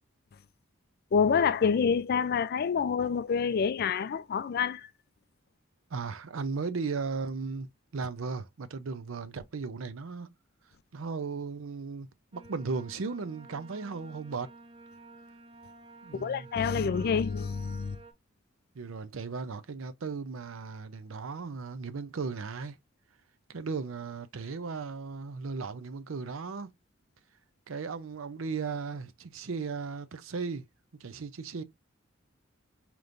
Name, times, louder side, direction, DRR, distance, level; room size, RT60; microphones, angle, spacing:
voice 1, 1.1-4.9 16.1-18.0, left 6 dB, 50° left, 0.3 m, -27 dB
voice 2, 5.9-10.3 10.9-14.5 16.0-17.1 18.7-22.8 23.5-26.7 27.7-30.6 31.0-31.6, right 4 dB, 80° right, 0.6 m, -36 dB
sound 1, 12.3-18.1, right 3 dB, 25° right, 0.6 m, -52 dB
5.1 x 3.0 x 2.5 m
head